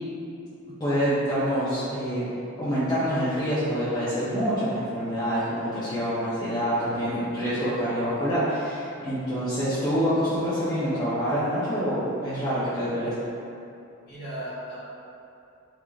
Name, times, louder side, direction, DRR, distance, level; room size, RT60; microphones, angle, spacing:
voice 1, 0.8-2.3 2.6-13.1, equal, 20° left, -13 dB, 0.4 m, -26 dB
voice 2, 6.8-7.2 14.0-14.8, equal, 50° left, -12 dB, 1.0 m, -37 dB
3.1 x 2.4 x 2.2 m, 2.7 s
head